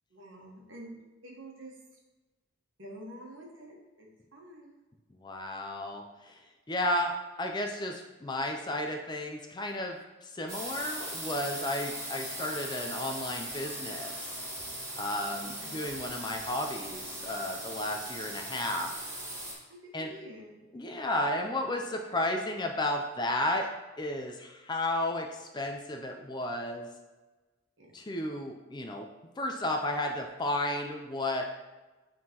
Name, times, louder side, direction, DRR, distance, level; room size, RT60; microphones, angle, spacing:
voice 1, 0.1-1.7 2.8-4.8 15.4-15.8 19.7-20.5 27.8-28.0, right 1 dB, 65° right, -1 dB, 1.3 m, -48 dB
voice 2, 5.2-6.4 6.7-14.1 15.0-18.9 19.9-20.1 20.7-23.7 24.0-26.9 27.9-29.1 29.4-31.5, left 1 dB, 20° left, 3 dB, 0.4 m, -33 dB
sound 1, 10.5-19.5, right 1 dB, 15° right, 1.2 m, -39 dB
8.6 x 3.7 x 2.9 m, 1.2 s
head